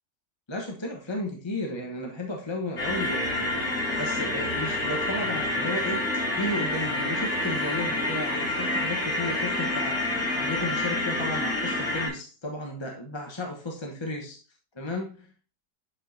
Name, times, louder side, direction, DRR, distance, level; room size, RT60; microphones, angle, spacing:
voice 1, 0.5-14.4 14.7-15.3, left 1 dB, 20° left, 1 dB, 0.9 m, -34 dB
sound 1, 2.8-12.1, left 2 dB, 60° left, 4.0 m, -28 dB
10.5 x 5.5 x 2.7 m, 0.38 s
omnidirectional pair, 1.8 m